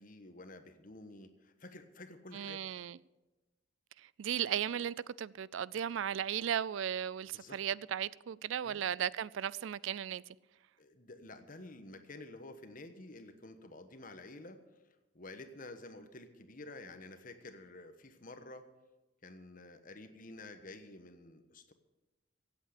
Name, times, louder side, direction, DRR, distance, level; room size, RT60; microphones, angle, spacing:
voice 1, 0.0-2.7 7.3-7.6 8.6-8.8 10.8-14.6 15.1-18.7 19.2-21.7, left 2 dB, 45° left, 1.2 m, -50 dB
voice 2, 2.3-3.0 4.2-10.2, right 9 dB, 75° right, 0.4 m, -36 dB
16.0 x 8.4 x 6.7 m
head